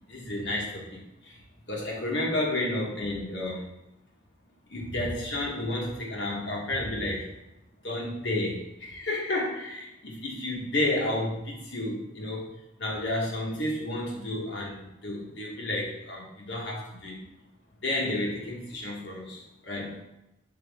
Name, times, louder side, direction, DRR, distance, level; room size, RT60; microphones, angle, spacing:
voice 1, 0.1-1.4 1.7-3.6 4.7-7.3 7.8-12.5 12.8-17.2 17.8-20.0, left 1 dB, 60° left, -2 dB, 1.3 m, -31 dB
5.8 x 5.2 x 3.5 m, 0.90 s
head